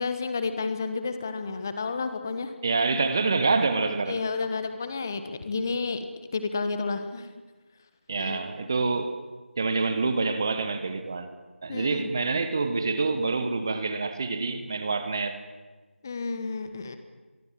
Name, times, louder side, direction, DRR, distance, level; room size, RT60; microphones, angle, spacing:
voice 1, 0.0-2.5 4.1-6.0 6.3-7.3 8.2-8.4 11.7-12.0 16.0-17.0, left 4 dB, 15° left, 9 dB, 1.3 m, -31 dB
voice 2, 2.6-4.2 8.1-9.2 9.6-11.3 11.6-15.4, right 3 dB, 20° right, 10 dB, 1.4 m, -26 dB
26.0 x 23.5 x 7.6 m, 1.3 s
figure-of-eight pair, 170°, 6 cm